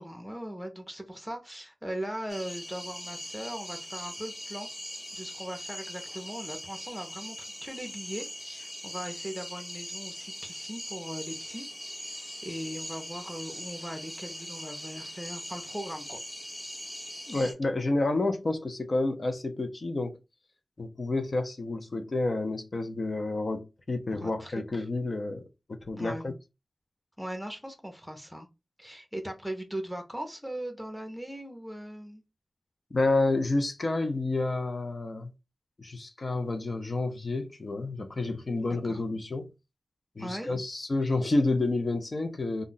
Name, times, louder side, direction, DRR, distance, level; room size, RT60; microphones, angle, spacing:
voice 1, 0.0-4.7 5.1-7.4 7.6-11.7 12.4-16.2 24.2-24.9 26.0-26.3 27.2-28.5 28.8-32.2 38.6-39.0 40.2-40.5, right 1 dB, ahead, 0.7 m, -39 dB
sound 1, 2.3-17.5, equal, 25° left, 1.1 m, -41 dB
voice 2, 17.3-20.2 20.8-25.4 25.7-26.3 32.9-35.3 35.8-39.5 40.2-42.6, left 2 dB, 50° left, 0.6 m, -29 dB
2.4 x 2.1 x 3.8 m
wide cardioid pair, 95°, 0 cm